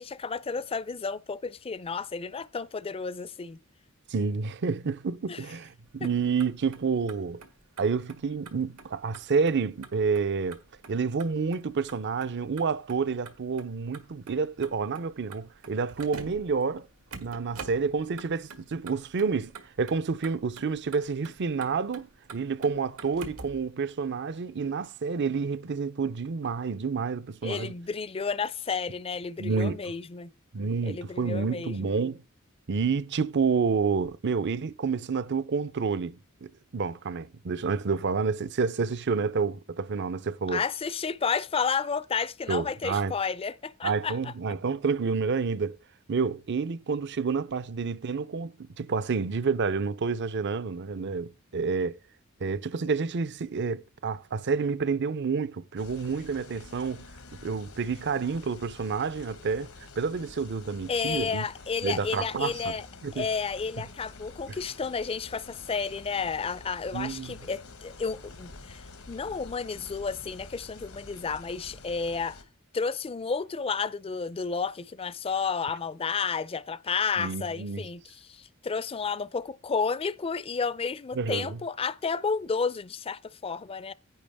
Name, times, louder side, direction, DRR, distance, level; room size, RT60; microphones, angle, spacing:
voice 1, 0.0-3.6 5.3-5.4 6.0-6.1 27.4-30.3 30.9-31.9 40.5-44.3 60.9-62.9 63.2-72.4 72.7-83.9, left 5 dB, 25° left, 0.4 m, -31 dB
voice 2, 4.1-7.4 7.8-10.6 10.9-16.9 17.2-19.5 19.8-27.8 29.4-29.9 30.5-32.2 32.7-40.6 42.5-43.1 43.8-45.8 46.1-52.0 52.4-61.4 61.8-62.8 63.0-63.3 66.9-67.4 77.2-77.8 81.1-81.6, right 5 dB, 55° right, 0.6 m, -29 dB
Motor vehicle (road), 5.9-23.7, right 4 dB, 85° right, 1.7 m, -48 dB
sound 1, 55.8-72.4, left 3 dB, 85° left, 1.4 m, -48 dB
10.5 x 9.1 x 3.5 m
head